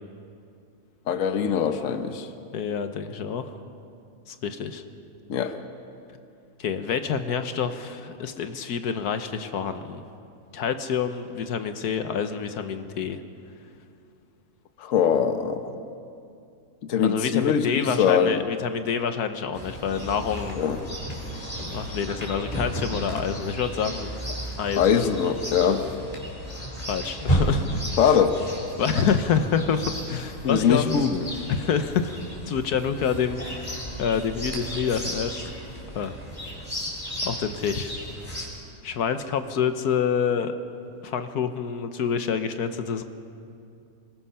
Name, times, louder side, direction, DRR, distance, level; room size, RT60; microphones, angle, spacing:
voice 1, 1.1-2.3 5.3-5.5 14.8-15.7 16.9-18.4 20.6-20.8 24.8-25.8 28.0-28.4 30.4-31.1, left 7 dB, 60° left, 8 dB, 1.3 m, -22 dB
voice 2, 2.5-3.6 4.3-4.8 6.6-10.0 10.5-13.2 17.0-20.6 21.6-24.1 24.6-25.1 26.9-27.7 28.0-28.2 28.8-32.1 32.5-35.4 35.9-36.1 37.2-37.9 38.8-40.5 41.0-43.0, left 7 dB, 80° left, 8 dB, 1.5 m, -27 dB
Chirp tweet, 19.5-38.5, right 1 dB, 25° left, 3.9 m, -33 dB
27.0 x 20.0 x 5.7 m, 2.5 s
omnidirectional pair, 1.6 m